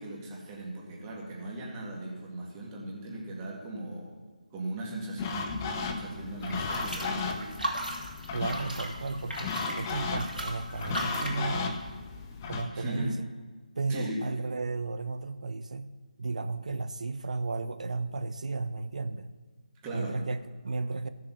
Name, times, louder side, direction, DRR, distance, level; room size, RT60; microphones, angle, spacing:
voice 1, 0.0-4.2 4.5-7.6 12.7-13.2 13.9-14.2 19.8-20.2, right 1 dB, 15° right, -3 dB, 2.0 m, -38 dB
sound 1, 5.2-12.7, left 5 dB, 20° left, 0.8 m, -35 dB
sound 2, 6.4-11.4, right 1 dB, 90° right, 3.0 m, -37 dB
voice 2, 8.3-11.8 12.4-13.3 13.8-15.9 16.2-19.3 19.9-21.1, right 3 dB, 55° right, 12 dB, 0.6 m, -34 dB
14.5 x 6.7 x 5.8 m, 1.4 s
figure-of-eight pair, 155°, 4 cm